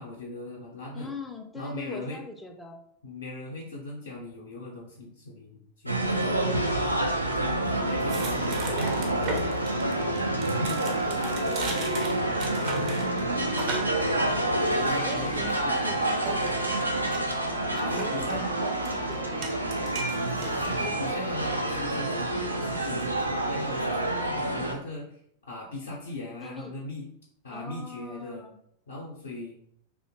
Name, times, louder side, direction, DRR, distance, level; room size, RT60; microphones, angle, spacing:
voice 1, 0.0-1.1 1.5-2.2 3.0-6.3 7.3-9.4 14.4-15.4 17.9-18.4 20.3-25.2 25.5-27.1 27.4-28.5 28.9-29.6, left 2 dB, 70° left, -4 dB, 0.5 m, -39 dB
voice 2, 0.9-2.8 6.2-6.8 10.6-13.2 14.6-16.6 17.8-19.7 26.4-26.7 27.5-28.6, left 2 dB, 10° left, 4 dB, 0.4 m, -42 dB
sound 1, 5.9-24.7, right 1 dB, 85° right, 0.3 m, -28 dB
sound 2, 8.0-22.2, right 3 dB, 40° right, 0.6 m, -40 dB
2.7 x 2.1 x 2.7 m, 0.70 s
figure-of-eight pair, 90°, 0 cm